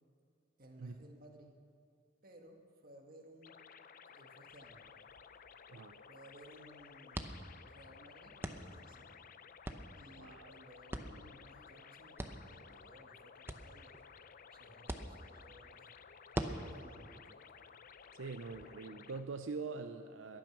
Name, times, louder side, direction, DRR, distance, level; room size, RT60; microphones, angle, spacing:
voice 1, 0.6-1.6 2.2-3.6 4.0-4.9 6.1-7.3 7.7-9.2 10.0-14.0 14.5-15.9 16.7-17.2 18.2-18.3, right 1 dB, 50° right, 2 dB, 1.7 m, -59 dB
sound 1, 3.4-19.2, left 6 dB, 50° left, 0.5 m, -56 dB
sound 2, 4.5-18.6, right 1 dB, 10° right, 0.7 m, -47 dB
voice 2, 10.2-10.5 18.1-20.4, right 4 dB, 85° right, 7 dB, 0.6 m, -44 dB
22.0 x 9.2 x 6.0 m, 2.3 s
head